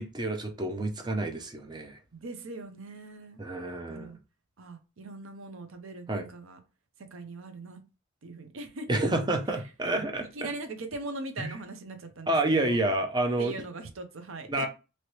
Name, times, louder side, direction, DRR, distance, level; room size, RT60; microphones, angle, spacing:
voice 1, 0.0-2.0 3.4-4.2 6.1-6.2 8.9-10.5 11.4-11.5 12.3-13.5 14.5-14.7, right 2 dB, 20° right, 0.5 m, -29 dB
voice 2, 2.1-3.4 3.9-4.2 4.6-6.6 7.1-7.8 8.2-9.0 10.3-12.8 13.4-14.7, right 2 dB, 60° right, 0.7 m, -41 dB
3.0 x 2.9 x 3.0 m
head